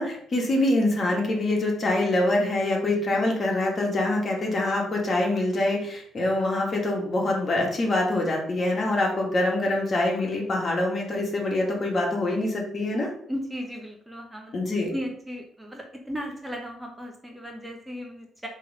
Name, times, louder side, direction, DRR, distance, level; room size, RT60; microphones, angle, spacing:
voice 1, 0.0-13.1 14.5-14.9, left 2 dB, 40° left, 0 dB, 1.9 m, -25 dB
voice 2, 13.3-14.6 14.9-18.5, equal, 10° right, 1 dB, 1.0 m, -36 dB
5.4 x 3.5 x 5.4 m, 0.65 s
cardioid pair, 90°, 0 cm